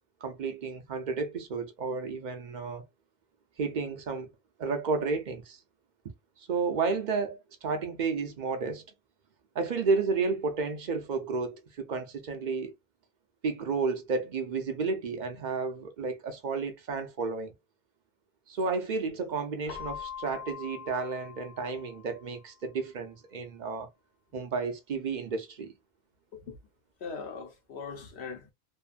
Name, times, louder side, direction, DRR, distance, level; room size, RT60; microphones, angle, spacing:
voice 1, 0.2-2.8 3.6-4.3 4.6-5.6 6.4-8.9 9.5-12.7 13.4-17.5 18.5-23.9 24.3-25.7, right 4 dB, 55° right, 0.6 m, -32 dB
Keyboard (musical), 19.7-22.4, left 8 dB, 30° left, 0.8 m, -43 dB
voice 2, 27.0-28.5, left 5 dB, 70° left, 1.1 m, -40 dB
2.7 x 2.5 x 2.3 m
omnidirectional pair, 1.1 m